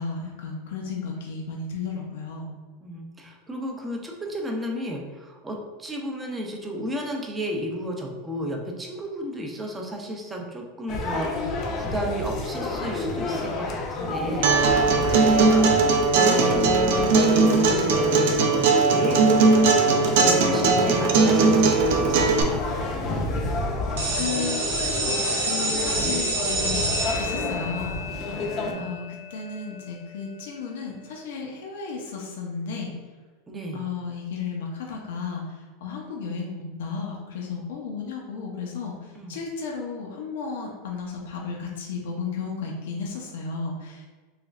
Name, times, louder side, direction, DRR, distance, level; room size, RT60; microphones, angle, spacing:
voice 1, 0.0-2.5 24.2-26.9 27.2-28.0 28.8-32.9 33.7-44.1, left 5 dB, 80° left, 0 dB, 0.6 m, -34 dB
voice 2, 2.8-22.6 25.9-26.2 28.6-28.9 33.5-33.8 39.2-39.4, equal, 10° right, 1 dB, 0.5 m, -33 dB
sound 1, 10.9-28.7, left 2 dB, 35° left, 0.5 m, -30 dB
Acoustic guitar, 14.4-22.4, right 4 dB, 70° right, 0.5 m, -19 dB
sound 2, 24.0-29.6, right 1 dB, 85° right, 0.8 m, -29 dB
3.3 x 3.0 x 2.4 m, 1.4 s
supercardioid pair, 155°, 0 cm